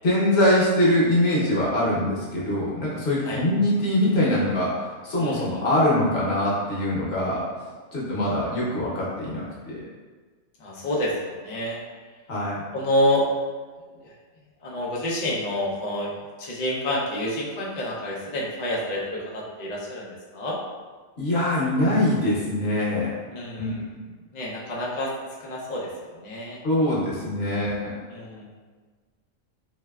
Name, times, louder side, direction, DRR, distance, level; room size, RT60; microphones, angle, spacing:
voice 1, 0.0-4.7 5.0-7.4 7.9-9.7 12.3-12.6 21.2-23.1 23.6-23.8 26.6-27.9, left 1 dB, 55° left, -6 dB, 1.0 m, -23 dB
voice 2, 5.2-5.5 10.6-11.8 12.7-13.3 14.0-14.1 14.6-16.1 16.4-20.6 23.3-23.8 24.3-25.1 25.4-25.9 26.1-26.6 28.1-28.4, left 1 dB, 70° left, -4 dB, 0.4 m, -28 dB
3.1 x 2.7 x 2.3 m, 1.4 s
omnidirectional pair, 1.4 m